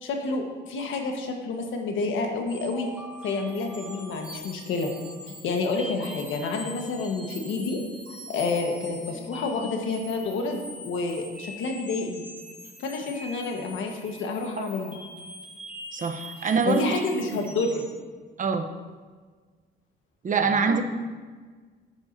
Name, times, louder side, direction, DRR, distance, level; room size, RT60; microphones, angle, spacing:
voice 1, 0.0-2.9 3.2-4.9 5.4-7.8 8.1-12.2 12.8-15.0 16.7-17.8 20.4-20.7, left 3 dB, 80° left, 3 dB, 1.4 m, -29 dB
sound 1, 2.5-18.0, left 1 dB, 5° right, 1.9 m, -43 dB
voice 2, 15.9-16.9 18.4-18.7 20.2-20.8, right 5 dB, 40° right, 6 dB, 0.8 m, -24 dB
9.8 x 9.4 x 2.7 m, 1.5 s
cardioid pair, 90°, 20 cm